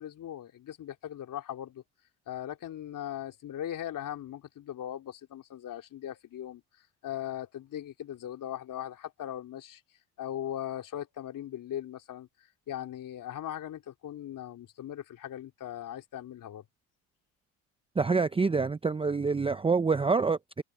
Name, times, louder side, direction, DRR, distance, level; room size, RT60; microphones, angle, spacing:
voice 1, 0.0-1.8 2.3-6.6 7.0-9.8 10.2-16.6, left 11 dB, 50° left, 3.3 m, -39 dB
voice 2, 18.0-20.6, right 4 dB, 15° right, 0.7 m, -26 dB
supercardioid pair, 80°, 40 cm